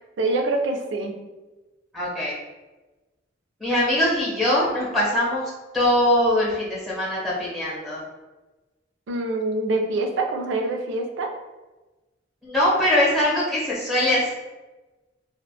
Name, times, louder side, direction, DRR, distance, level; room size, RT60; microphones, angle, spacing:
voice 1, 0.2-1.1 9.1-11.3, right 2 dB, 75° right, 3 dB, 0.4 m, -25 dB
voice 2, 1.9-2.3 3.6-8.0 12.4-14.3, left 1 dB, ahead, -8 dB, 0.8 m, -22 dB
2.8 x 2.1 x 2.2 m, 1.1 s
head